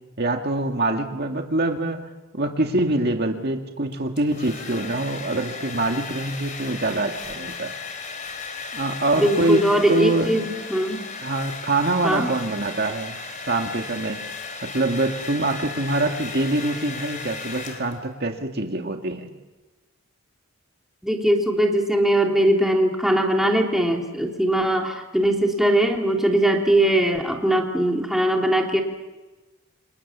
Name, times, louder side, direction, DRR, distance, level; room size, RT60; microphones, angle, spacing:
voice 1, 0.2-2.0 2.3-7.7 8.7-9.6 9.9-10.4 11.2-13.2 13.5-14.2 14.6-19.3, right 2 dB, 50° right, 3 dB, 2.1 m, -24 dB
Domestic sounds home sounds, 3.9-18.2, left 4 dB, 35° left, 3.7 m, -36 dB
voice 2, 9.2-11.1 12.0-12.3 21.0-28.8, right 1 dB, ahead, 0 dB, 3.2 m, -21 dB
29.5 x 27.0 x 7.4 m, 1.2 s
head